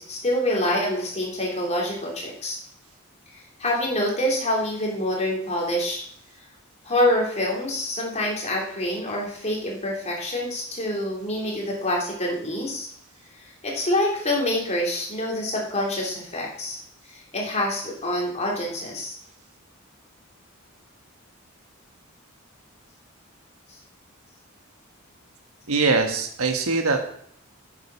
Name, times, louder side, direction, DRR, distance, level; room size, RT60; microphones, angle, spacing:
voice 1, 0.0-2.6 3.6-6.0 6.9-12.9 13.6-16.8 17.1-19.1, left 1 dB, 30° left, -2 dB, 3.3 m, -26 dB
voice 2, 25.7-27.0, right 4 dB, 85° right, 5 dB, 1.4 m, -22 dB
9.8 x 7.8 x 5.5 m, 0.64 s
head